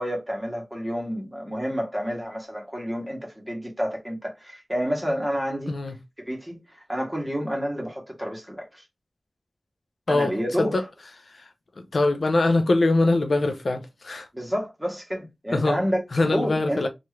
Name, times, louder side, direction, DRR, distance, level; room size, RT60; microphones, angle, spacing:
voice 1, 0.0-8.9 10.1-10.9 14.3-16.9, equal, 10° right, 1.3 m, -29 dB
voice 2, 11.9-14.3 15.5-15.8 16.1-16.9, left 2 dB, 65° left, 0.5 m, -22 dB
2.9 x 2.4 x 3.1 m
wide cardioid pair, 60°, 0 cm